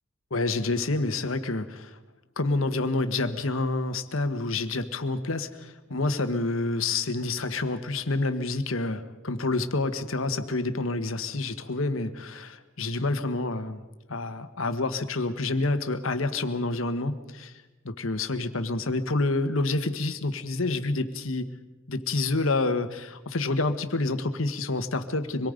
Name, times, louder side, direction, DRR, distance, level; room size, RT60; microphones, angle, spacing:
voice 1, 0.3-2.0 2.4-13.8 14.1-17.5 17.8-21.5 21.9-25.5, left 2 dB, 80° left, 9 dB, 1.4 m, -28 dB
25.5 x 22.0 x 5.2 m, 1.1 s
head